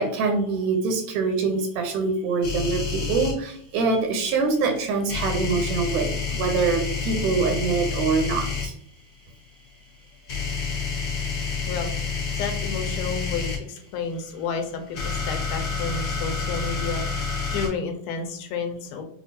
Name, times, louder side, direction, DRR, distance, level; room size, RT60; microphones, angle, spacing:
voice 1, 0.0-8.7, right 4 dB, 80° right, 4 dB, 1.9 m, -24 dB
sound 1, 2.4-3.3 5.1-8.7 10.3-13.6 14.7-17.7, left 5 dB, 50° left, 1.9 m, -28 dB
voice 2, 12.3-19.0, left 5 dB, 80° left, 4 dB, 2.1 m, -31 dB
6.1 x 2.4 x 2.7 m, 0.63 s
omnidirectional pair, 3.8 m